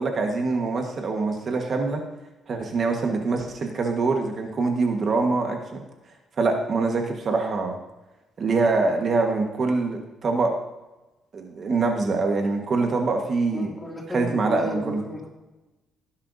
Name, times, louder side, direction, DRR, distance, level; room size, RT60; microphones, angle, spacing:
voice 1, 0.0-2.0 2.5-5.8 6.4-7.8 8.4-10.6 11.3-13.7 14.1-15.0, right 3 dB, 40° right, 3 dB, 1.4 m, -24 dB
voice 2, 13.5-15.3, left 1 dB, 15° left, -1 dB, 2.4 m, -33 dB
17.0 x 10.5 x 2.7 m, 1.1 s
cardioid pair, 125°, 0 cm